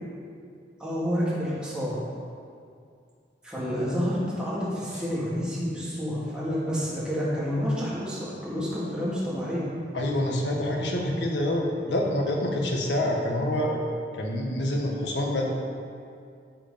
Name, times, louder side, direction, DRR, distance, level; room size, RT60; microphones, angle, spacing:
voice 1, 0.8-2.0 3.4-9.7, equal, 5° right, -9 dB, 2.6 m, -29 dB
voice 2, 9.9-13.8 14.1-15.5, left 1 dB, 85° left, 0 dB, 1.6 m, -26 dB
13.5 x 5.0 x 5.2 m, 2.3 s
head